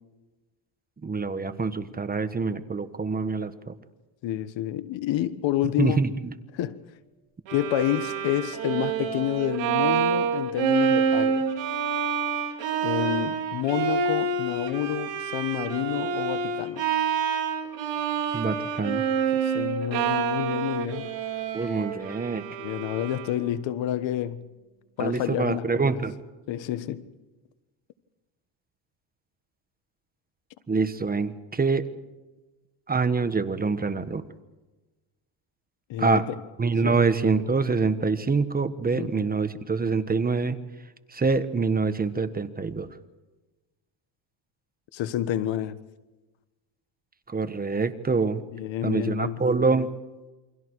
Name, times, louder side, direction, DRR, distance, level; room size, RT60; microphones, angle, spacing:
voice 1, 1.0-3.7 5.8-6.3 18.3-19.0 21.5-22.5 25.0-26.1 30.7-31.9 32.9-34.2 36.0-36.3 36.6-40.6 41.1-42.9 47.3-48.4 48.8-49.9, right 4 dB, 20° right, 1.3 m, -25 dB
voice 2, 4.2-6.0 6.6-6.8 7.5-11.4 12.8-16.8 19.3-21.1 22.6-24.4 25.0-25.9 26.5-27.1 35.9-36.4 36.8-37.0 38.9-39.3 44.9-45.8 48.5-49.4, left 12 dB, 65° left, 1.5 m, -29 dB
Bowed string instrument, 7.5-23.6, right 6 dB, 65° right, 4.2 m, -27 dB
29.0 x 24.0 x 4.8 m
cardioid pair, 125°, 48 cm